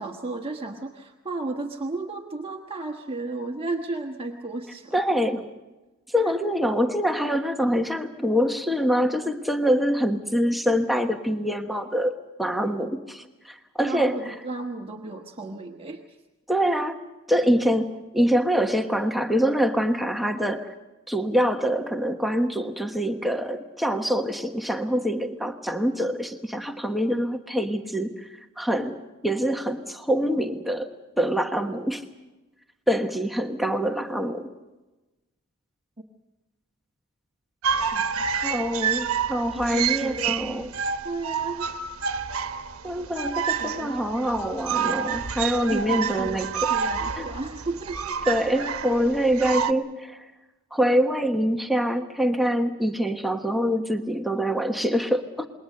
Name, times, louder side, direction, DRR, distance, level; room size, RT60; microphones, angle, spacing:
voice 1, 0.0-4.9 6.2-6.4 13.8-16.2 37.9-38.2 39.5-40.7 41.0-41.7 43.6-44.0 45.7-48.2, right 2 dB, 25° right, 2 dB, 1.3 m, -34 dB
voice 2, 4.9-5.5 6.1-14.3 16.5-17.0 17.3-20.7 21.1-28.3 28.6-29.0 29.2-32.0 32.9-34.5 38.4-40.7 42.8-46.7 47.2-47.3 48.3-50.2 50.7-55.5, equal, ahead, 5 dB, 1.2 m, -25 dB
sound 1, 37.6-49.7, right 7 dB, 75° right, 1.2 m, -29 dB
27.0 x 21.5 x 6.6 m, 1.1 s
head